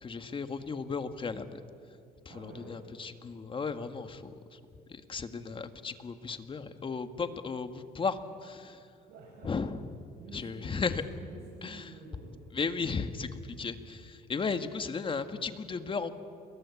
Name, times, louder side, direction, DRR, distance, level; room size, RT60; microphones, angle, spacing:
voice 1, 0.0-1.6 2.3-4.6 4.9-8.8 9.4-9.9 10.3-11.0 11.6-11.9 12.5-16.1, left 5 dB, 30° left, 9 dB, 1.7 m, -35 dB
voice 2, 2.3-2.8 5.1-5.6 9.1-9.5 10.2-12.4, right 3 dB, 70° right, -3 dB, 7.1 m, -50 dB
29.0 x 23.0 x 8.4 m, 2.6 s
cardioid pair, 110°, 17 cm